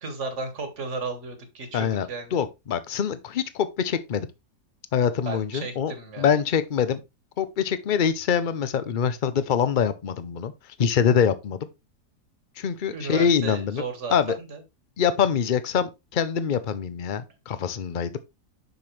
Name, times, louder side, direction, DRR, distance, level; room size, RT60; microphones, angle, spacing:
voice 1, 0.0-2.4 5.3-6.3 12.9-14.6, right 4 dB, 45° right, 1.7 m, -34 dB
voice 2, 1.7-4.3 4.9-7.0 7.4-10.5 10.8-11.6 12.6-13.8 14.1-14.4 15.0-18.2, left 7 dB, 60° left, 0.5 m, -24 dB
6.9 x 6.1 x 3.2 m
omnidirectional pair, 1.7 m